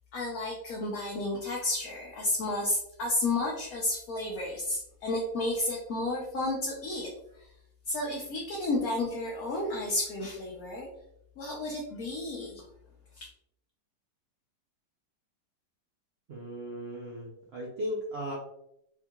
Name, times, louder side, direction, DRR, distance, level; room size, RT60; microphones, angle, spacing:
voice 1, 0.1-7.1 7.9-10.9 11.4-12.6 13.2-13.3, left 2 dB, 65° left, -3 dB, 1.0 m, -32 dB
voice 2, 16.3-18.3, equal, 70° right, -4 dB, 0.6 m, -36 dB
3.5 x 2.8 x 2.2 m, 0.79 s
omnidirectional pair, 1.8 m